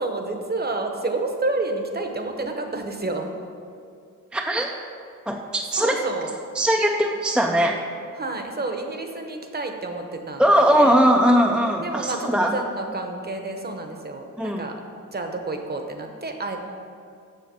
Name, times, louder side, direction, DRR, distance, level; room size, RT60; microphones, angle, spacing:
voice 1, 0.0-3.3 5.7-6.3 8.2-11.0 11.8-14.8 15.1-16.6, right 2 dB, 30° right, 4 dB, 0.9 m, -29 dB
voice 2, 4.3-4.7 5.3-5.9 6.6-7.8 10.4-12.5 14.4-14.6, equal, 5° right, 1 dB, 0.4 m, -20 dB
7.6 x 6.8 x 6.8 m, 2.3 s
wide cardioid pair, 165°, 32 cm